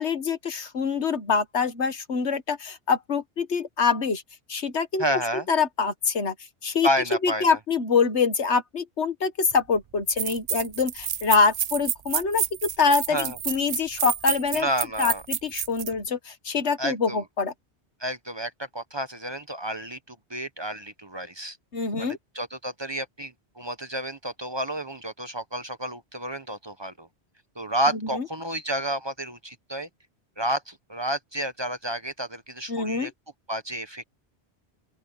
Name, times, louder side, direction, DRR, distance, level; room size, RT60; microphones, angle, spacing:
voice 1, 0.0-4.2 4.5-6.3 6.6-6.9 7.2-14.7 15.0-17.5 21.7-22.2 28.1-28.2 32.7-33.1, left 5 dB, 90° left, 1.8 m, -25 dB
voice 2, 5.0-5.5 6.8-7.5 13.1-13.4 14.5-15.2 16.8-17.2 18.0-21.6 22.0-27.1 27.6-29.9 30.4-33.1 33.5-34.0, right 1 dB, 25° right, 0.9 m, -30 dB
sound 1, 9.5-9.6 10.1-15.9, right 9 dB, 55° right, 0.4 m, -29 dB
open air
omnidirectional pair, 1.1 m